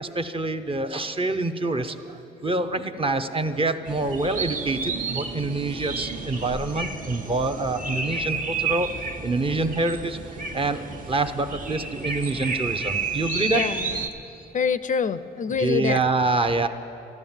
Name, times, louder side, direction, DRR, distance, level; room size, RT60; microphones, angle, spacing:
voice 1, 0.0-8.9 9.2-13.6 15.6-16.7, right 2 dB, 25° right, 7 dB, 0.8 m, -26 dB
sound 1, 3.9-14.1, right 4 dB, 45° right, 1.2 m, -31 dB
voice 2, 13.5-14.1 14.5-16.1, left 6 dB, 40° left, 14 dB, 0.5 m, -26 dB
13.0 x 12.0 x 7.3 m, 2.8 s
cardioid pair, 90°, 20 cm